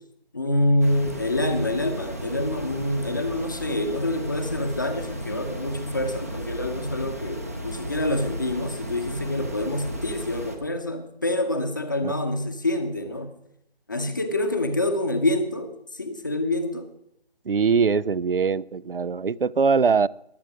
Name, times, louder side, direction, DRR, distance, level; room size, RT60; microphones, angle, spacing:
voice 1, 0.3-13.3 13.9-16.9, left 1 dB, 20° left, 0.8 m, -26 dB
sound 1, 0.8-10.6, equal, 15° right, 0.8 m, -35 dB
voice 2, 17.5-20.1, right 5 dB, 60° right, 0.5 m, -22 dB
22.0 x 8.6 x 4.9 m
figure-of-eight pair, 155°, 31 cm